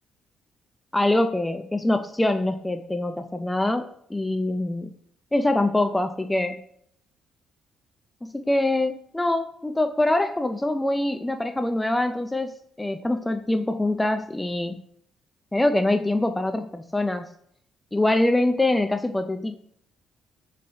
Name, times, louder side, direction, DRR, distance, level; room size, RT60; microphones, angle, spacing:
voice 1, 0.9-4.9 5.3-6.6 8.2-12.5 12.8-14.8 15.5-17.3 17.9-19.6, left 1 dB, 10° left, 7 dB, 0.3 m, -24 dB
3.8 x 3.2 x 3.8 m, 0.67 s
cardioid pair, 90°, 0 cm